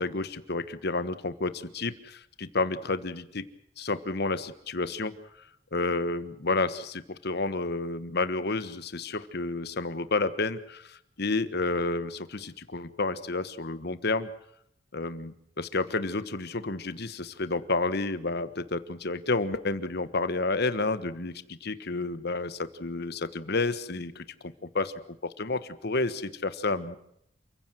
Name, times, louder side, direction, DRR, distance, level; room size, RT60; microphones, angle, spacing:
voice 1, 0.0-3.4 3.8-5.1 5.7-14.3 14.9-24.2 24.7-24.9 25.4-27.0, left 3 dB, 55° left, 13 dB, 1.4 m, -30 dB
28.5 x 16.0 x 7.7 m, 0.75 s
head